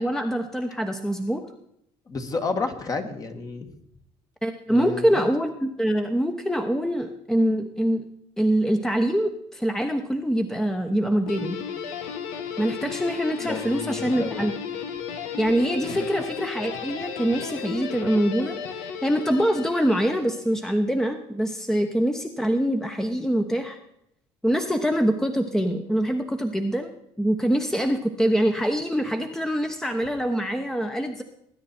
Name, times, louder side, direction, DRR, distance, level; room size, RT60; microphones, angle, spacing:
voice 1, 0.0-1.4 4.4-8.0 8.4-11.6 12.6-14.5 15.4-18.6 19.0-23.8 24.4-26.9 27.2-31.2, equal, 5° left, 6 dB, 1.0 m, -24 dB
voice 2, 2.1-3.7 4.7-5.2 13.4-14.4 15.9-16.1, left 3 dB, 35° left, 6 dB, 1.8 m, -31 dB
Guitar, 11.3-20.6, left 6 dB, 90° left, 1.4 m, -34 dB
20.0 x 9.6 x 4.4 m, 0.74 s
cardioid pair, 105°, 11 cm